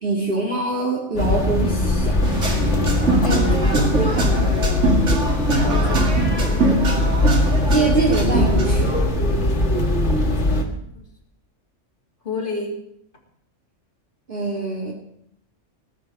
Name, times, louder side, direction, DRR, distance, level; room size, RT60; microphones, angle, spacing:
voice 1, 0.0-2.2 3.2-4.4 6.3-6.8 7.7-9.0 14.3-14.9, right 3 dB, 45° right, -4 dB, 2.5 m, -25 dB
sound 1, 1.2-10.6, left 1 dB, 65° left, 2.2 m, -20 dB
sound 2, 2.2-9.1, right 2 dB, 70° right, 2.8 m, -23 dB
voice 2, 3.2-3.8 5.6-6.1 10.2-11.1 12.2-12.8, left 3 dB, 45° left, -2 dB, 3.5 m, -32 dB
18.0 x 6.8 x 9.0 m, 0.73 s
omnidirectional pair, 1.3 m